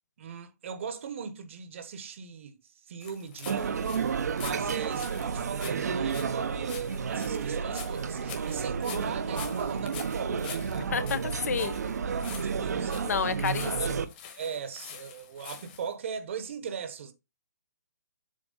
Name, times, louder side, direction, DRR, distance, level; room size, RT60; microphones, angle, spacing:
voice 1, 0.2-2.6 2.9-11.2 11.6-13.3 13.8-14.0 14.3-17.1, right 7 dB, 45° right, 1.1 m, -39 dB
sound 1, 3.0-15.9, left 8 dB, 30° left, 1.5 m, -46 dB
sound 2, 3.5-14.0, right 6 dB, 70° right, 0.9 m, -31 dB
voice 2, 10.9-11.7 13.0-14.1, left 7 dB, 65° left, 1.0 m, -30 dB
7.5 x 2.9 x 5.4 m
hypercardioid pair, 160°, 9 cm